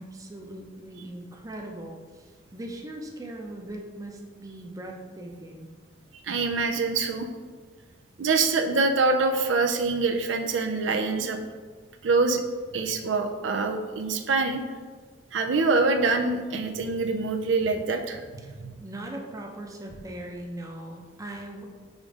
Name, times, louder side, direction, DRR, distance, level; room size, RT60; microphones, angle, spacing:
voice 1, 0.0-5.7 18.4-21.6, right 1 dB, 20° right, 1 dB, 0.6 m, -40 dB
voice 2, 6.2-7.3 8.2-11.4 12.0-12.4 12.7-14.6 15.3-18.3 18.6-18.8, right 3 dB, 90° right, 6 dB, 0.5 m, -25 dB
5.1 x 3.7 x 5.1 m, 1.5 s
head